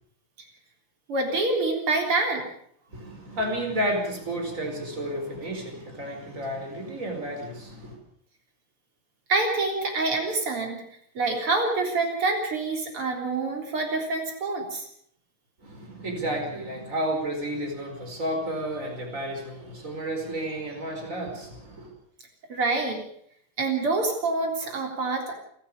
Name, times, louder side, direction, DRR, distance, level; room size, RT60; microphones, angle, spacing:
voice 1, 1.1-2.4 9.3-10.8 11.1-14.9 22.5-23.0 23.6-25.3, right 3 dB, 85° right, 2 dB, 4.6 m, -26 dB
voice 2, 2.9-8.0 15.6-21.9, right 1 dB, 35° right, 3 dB, 5.2 m, -31 dB
29.5 x 13.0 x 6.8 m, 0.68 s
omnidirectional pair, 2.4 m